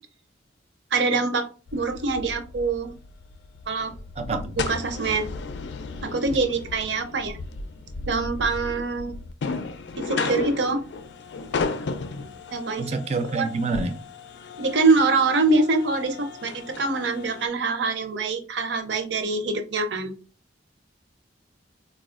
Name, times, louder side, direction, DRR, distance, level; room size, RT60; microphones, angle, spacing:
voice 1, 0.9-1.5 1.7-2.9 3.7-3.9 4.7-5.2 6.0-7.4 8.0-9.1 10.0-10.8 12.5-12.8 13.3-13.5 14.6-20.1, right 3 dB, 80° right, 0.6 m, -24 dB
sound 1, 1.7-17.5, left 4 dB, 80° left, 0.4 m, -34 dB
voice 2, 4.2-4.5 12.8-14.0, right 3 dB, 35° right, 0.4 m, -27 dB
4.0 x 2.3 x 2.4 m
head